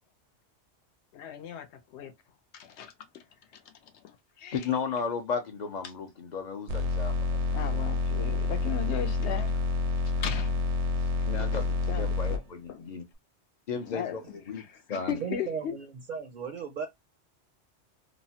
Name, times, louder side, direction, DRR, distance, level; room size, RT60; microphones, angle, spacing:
voice 1, 1.1-2.1 2.5-3.3 3.5-4.8 5.8-5.9 7.5-9.7 10.0-10.7 11.2-11.3 11.9-12.9 13.7-15.8, left 9 dB, 80° left, 0.9 m, -38 dB
voice 2, 4.5-7.1 11.3-13.0 13.7-14.2 14.5-14.6 14.9-15.1, left 6 dB, 55° left, 0.5 m, -34 dB
sound 1, 6.7-12.4, left 3 dB, 80° right, 0.9 m, -28 dB
voice 3, 15.2-16.9, right 6 dB, 55° right, 0.5 m, -36 dB
3.0 x 2.0 x 2.6 m
omnidirectional pair, 1.2 m